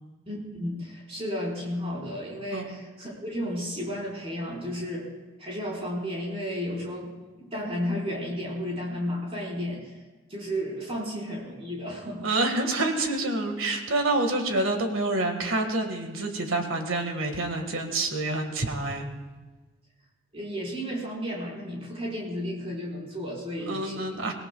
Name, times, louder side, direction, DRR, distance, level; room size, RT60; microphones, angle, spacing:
voice 1, 0.3-5.1 5.4-9.9 10.3-12.3 20.3-24.0, equal, 30° right, -4 dB, 4.4 m, -33 dB
voice 2, 12.2-19.1 23.7-24.3, right 2 dB, 70° right, 4 dB, 1.7 m, -27 dB
24.0 x 18.0 x 2.3 m, 1.3 s
head